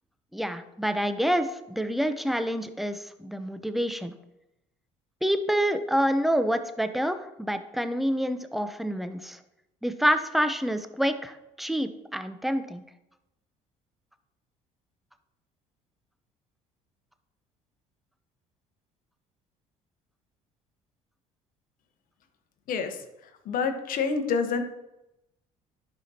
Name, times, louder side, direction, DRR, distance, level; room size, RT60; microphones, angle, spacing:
voice 1, 0.3-4.1 5.2-9.4 9.8-12.8, equal, ahead, 10 dB, 0.7 m, -27 dB
voice 2, 23.4-24.6, left 5 dB, 60° left, 7 dB, 1.1 m, -27 dB
11.0 x 4.9 x 2.8 m, 0.91 s
hypercardioid pair, 70°, 16 cm